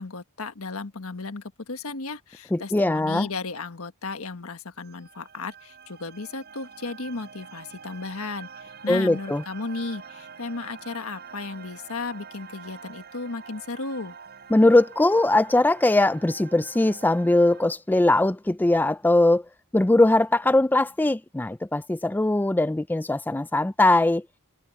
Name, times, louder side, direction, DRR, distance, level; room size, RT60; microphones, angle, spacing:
voice 1, 0.0-14.2, left 3 dB, 80° left, 1.4 m, -35 dB
voice 2, 2.5-3.3 8.9-9.4 14.5-19.4 19.7-24.2, left 2 dB, 10° left, 0.3 m, -20 dB
sound 1, 4.8-17.7, right 6 dB, 50° right, 5.0 m, -46 dB
head